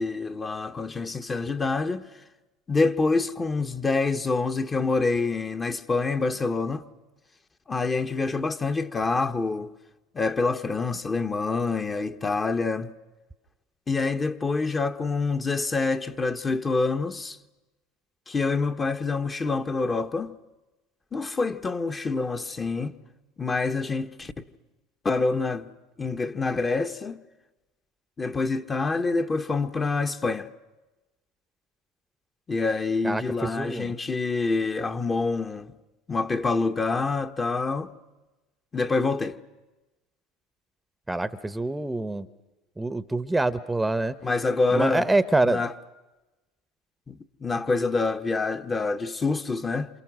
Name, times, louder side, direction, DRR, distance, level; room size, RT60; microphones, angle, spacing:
voice 1, 0.0-2.1 2.7-6.8 7.7-9.7 10.1-12.9 13.9-17.4 18.3-20.4 21.1-22.9 23.4-24.3 25.0-25.7 26.0-27.2 28.2-30.5 32.5-35.7 36.1-37.9 38.7-39.4 44.2-45.1 45.4-45.7 47.1-49.9, left 3 dB, 25° left, 1.5 m, -26 dB
voice 2, 33.0-33.9 41.1-42.3 42.8-44.1 44.7-45.6, right 2 dB, 10° right, 1.1 m, -25 dB
28.5 x 27.5 x 6.4 m
hypercardioid pair, 85°, 0 cm